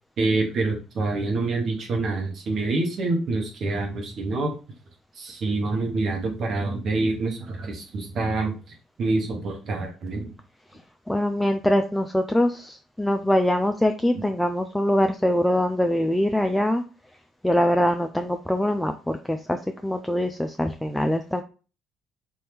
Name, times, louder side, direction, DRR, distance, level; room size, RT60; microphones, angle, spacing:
voice 1, 0.2-4.5 5.1-8.5 9.0-10.3 14.1-14.2, right 3 dB, 50° right, 1 dB, 1.1 m, -26 dB
voice 2, 11.1-16.8 17.4-21.4, left 1 dB, 5° left, 5 dB, 0.4 m, -23 dB
4.2 x 2.7 x 3.4 m, 0.34 s
hypercardioid pair, 55°, 0 cm